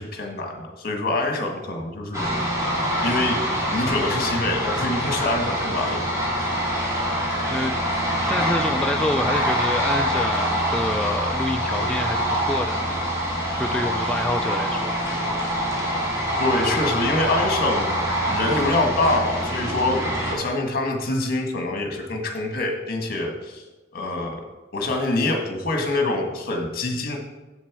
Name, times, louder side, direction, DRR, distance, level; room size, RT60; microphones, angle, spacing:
voice 1, 0.0-2.3 3.0-3.4 3.7-6.0 16.4-20.0 20.3-23.6 23.9-24.4 24.7-27.2, left 2 dB, 50° left, 3 dB, 1.4 m, -25 dB
sound 1, 2.1-20.3, equal, 15° right, 2.1 m, -25 dB
voice 2, 6.9-7.7 8.3-12.9 13.6-14.9, left 1 dB, 5° left, 3 dB, 0.3 m, -27 dB
7.7 x 7.3 x 4.7 m, 1.2 s
head